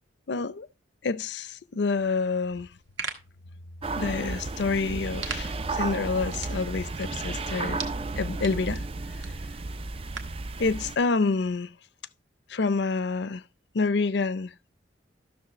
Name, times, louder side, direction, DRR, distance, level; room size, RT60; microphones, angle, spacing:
voice 1, 0.3-0.7 1.0-2.7 3.9-7.9 8.2-8.8 10.6-11.7 12.5-13.4 13.7-14.7, left 4 dB, 65° left, 0.5 m, -28 dB
sound 1, 2.6-10.5, right 5 dB, 70° right, 1.4 m, -43 dB
sound 2, 3.8-11.0, right 3 dB, 30° right, 0.4 m, -33 dB
13.0 x 6.5 x 3.0 m
head